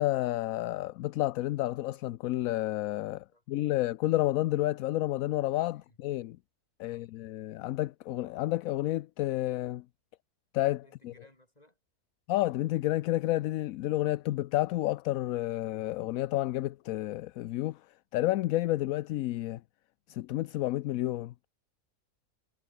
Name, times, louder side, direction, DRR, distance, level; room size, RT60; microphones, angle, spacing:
voice 1, 0.0-6.4 6.8-9.8 10.5-11.1 12.3-17.8 18.1-19.6 20.1-21.3, left 16 dB, 70° left, 0.9 m, -30 dB
voice 2, 10.8-11.8, left 1 dB, 25° left, 6.6 m, -61 dB
omnidirectional pair, 1.6 m